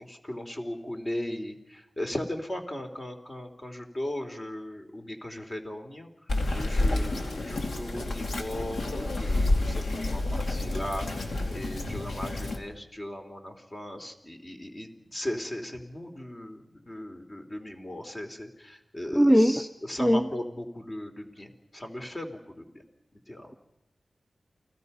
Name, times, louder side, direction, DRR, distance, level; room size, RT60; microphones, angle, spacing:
voice 1, 0.0-6.1 6.5-22.8 23.3-23.6, left 1 dB, 30° left, 4 dB, 3.0 m, -37 dB
Bird vocalization bird call bird song, 6.3-12.6, left 2 dB, 80° left, 2.5 m, -29 dB
voice 2, 19.1-19.5 20.0-20.3, equal, ahead, 8 dB, 0.7 m, -19 dB
29.5 x 18.5 x 5.5 m, 0.92 s
wide cardioid pair, 80°, 0 cm